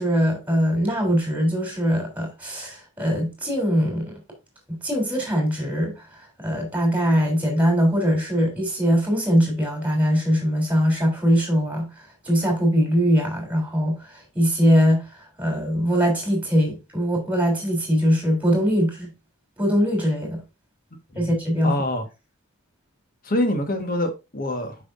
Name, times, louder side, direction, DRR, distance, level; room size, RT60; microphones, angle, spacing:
voice 1, 0.0-4.2 4.7-6.1 6.4-19.1 19.6-20.4 21.1-21.7, equal, 10° right, 3.2 m, -22 dB
voice 2, 21.6-22.0 23.2-24.8, left 1 dB, 45° left, 1.4 m, -25 dB
7.8 x 5.9 x 2.5 m
head